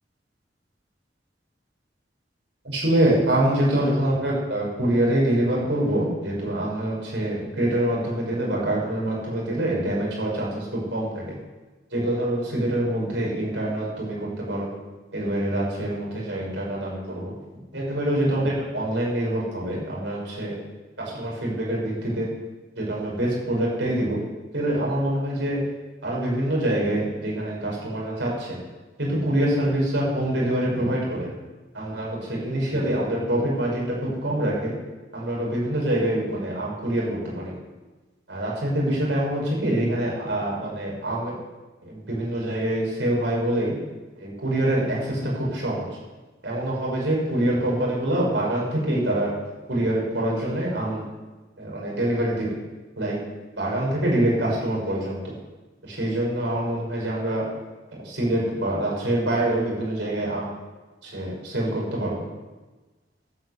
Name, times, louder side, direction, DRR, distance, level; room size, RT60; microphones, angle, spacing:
voice 1, 2.6-11.4 11.9-14.7 15.1-17.3 17.7-20.6 21.0-22.3 22.8-24.2 24.5-25.6 26.0-28.6 29.0-31.3 31.7-34.7 35.1-37.5 38.3-41.3 41.8-43.7 44.2-45.8 46.4-49.3 49.7-51.0 51.6-52.6 53.0-53.2 53.5-55.3 55.8-57.5 57.9-60.5 61.0-62.2, right 1 dB, 70° right, -4 dB, 6.0 m, -25 dB
13.0 x 8.9 x 8.2 m, 1.2 s
head